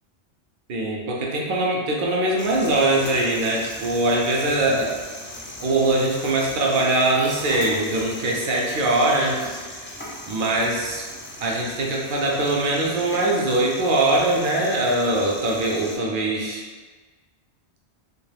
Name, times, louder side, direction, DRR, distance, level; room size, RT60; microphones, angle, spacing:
voice 1, 0.7-4.9 5.6-9.9 10.3-11.1 11.4-16.6, right 2 dB, 60° right, -2 dB, 0.6 m, -22 dB
sound 1, 2.4-16.0, left 1 dB, 20° left, 0.3 m, -38 dB
2.3 x 2.3 x 3.2 m, 1.4 s
omnidirectional pair, 1.1 m